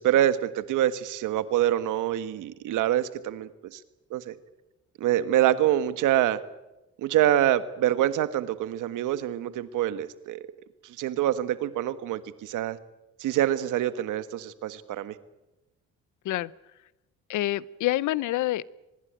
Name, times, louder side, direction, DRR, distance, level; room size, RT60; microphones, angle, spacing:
voice 1, 0.0-3.8 4.1-4.3 5.0-6.4 7.0-10.5 10.8-12.8 13.2-15.1, right 12 dB, 85° right, 13 dB, 1.6 m, -26 dB
voice 2, 17.3-18.7, left 15 dB, 80° left, 21 dB, 0.8 m, -27 dB
24.5 x 20.0 x 8.9 m, 1.0 s
cardioid pair, 90°, 30 cm